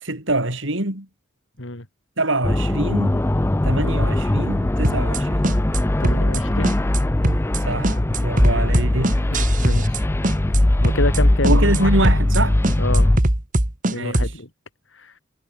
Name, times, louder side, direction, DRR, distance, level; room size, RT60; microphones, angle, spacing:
voice 1, 0.0-1.1 2.2-3.1 3.6-5.4 7.7-9.2 11.4-12.6 13.9-14.3, right 1 dB, 65° right, 5.3 m, -24 dB
sound 1, 2.4-13.2, left 1 dB, 10° left, 0.4 m, -20 dB
sound 2, 4.8-5.2 5.4-5.8 6.0-6.4 6.6-7.0 7.2-7.6 7.8-10.0 10.2-10.6 10.8-11.2 11.4-11.8 12.0-12.4 12.6-14.3, right 1 dB, 40° right, 2.0 m, -21 dB
voice 2, 6.0-6.7 9.1-10.1 10.5-12.0 12.8-13.1 13.9-14.5 14.9-15.2, left 2 dB, 65° left, 3.7 m, -29 dB
head